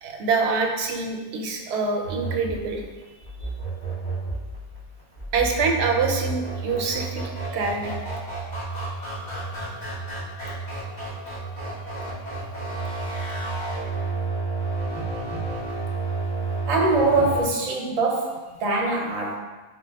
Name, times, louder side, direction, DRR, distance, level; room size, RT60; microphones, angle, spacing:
voice 1, 0.0-2.8 5.3-8.0, right 4 dB, 85° right, 2 dB, 0.8 m, -25 dB
sound 1, 2.0-17.4, right 3 dB, 40° left, 1.2 m, -31 dB
voice 2, 16.7-19.4, right 2 dB, 45° right, -1 dB, 0.6 m, -23 dB
4.2 x 2.0 x 3.3 m, 1.2 s
omnidirectional pair, 1.1 m